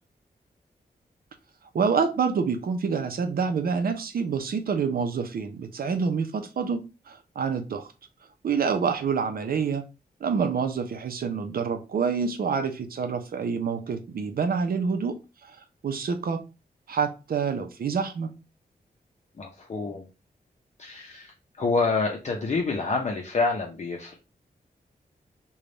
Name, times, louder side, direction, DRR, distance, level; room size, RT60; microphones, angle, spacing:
voice 1, 1.7-6.8 7.1-7.9 8.4-9.8 10.2-15.1 15.4-15.5 15.8-16.4 16.9-18.3, right 5 dB, 65° right, 0.6 m, -27 dB
voice 2, 19.4-20.1 20.8-24.2, left 3 dB, 45° left, 0.6 m, -27 dB
3.3 x 2.3 x 3.8 m
wide cardioid pair, 145°, 16 cm